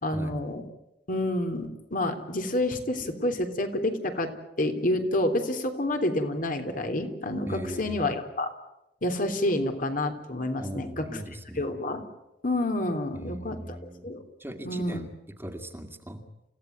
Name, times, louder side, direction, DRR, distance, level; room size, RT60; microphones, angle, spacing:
voice 1, 0.0-0.6 1.1-4.3 4.6-8.5 9.0-11.2 11.6-12.0 12.4-13.8 14.0-14.2 14.6-15.0, left 1 dB, 50° left, 6 dB, 3.5 m, -28 dB
voice 2, 7.5-8.0 10.6-11.7 13.1-14.1 14.4-15.1 15.4-16.2, equal, 15° right, 5 dB, 2.2 m, -39 dB
29.5 x 16.5 x 9.6 m, 0.91 s
head